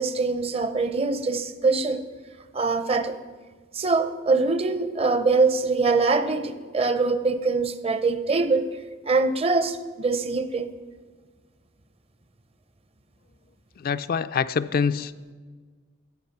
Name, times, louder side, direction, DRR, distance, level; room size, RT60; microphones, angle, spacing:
voice 1, 0.0-2.0 2.5-3.2 3.7-8.7 9.1-10.7, right 3 dB, 30° right, 11 dB, 0.6 m, -23 dB
voice 2, 13.8-15.3, left 6 dB, 50° left, 12 dB, 0.4 m, -26 dB
14.0 x 8.2 x 5.8 m, 1.5 s
head